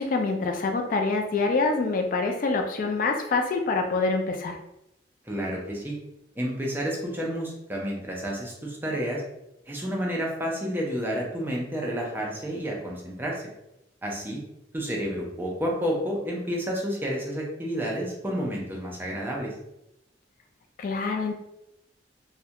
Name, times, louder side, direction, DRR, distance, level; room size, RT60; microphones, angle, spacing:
voice 1, 0.0-4.6 20.8-21.3, left 3 dB, 50° left, 3 dB, 0.3 m, -26 dB
voice 2, 5.3-6.0 6.4-9.2 9.7-13.4 14.0-14.4 14.7-19.5, equal, 10° right, -3 dB, 0.5 m, -30 dB
2.3 x 2.1 x 2.8 m, 0.85 s
head